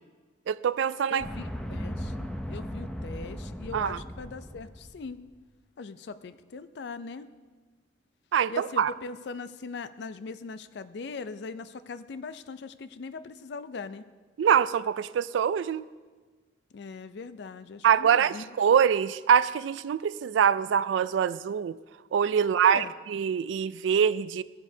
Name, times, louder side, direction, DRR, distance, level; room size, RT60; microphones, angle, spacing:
voice 1, 0.5-1.2 3.7-4.0 8.3-8.9 14.4-15.8 17.8-21.8 22.1-24.4, right 8 dB, 80° right, 17 dB, 0.3 m, -24 dB
voice 2, 1.1-5.2 5.8-7.3 8.5-14.0 16.7-18.4 22.4-22.9, left 4 dB, 60° left, 13 dB, 0.4 m, -40 dB
sound 1, 1.2-5.1, equal, 5° left, 0.5 m, -37 dB
15.0 x 9.3 x 2.7 m, 1.4 s
head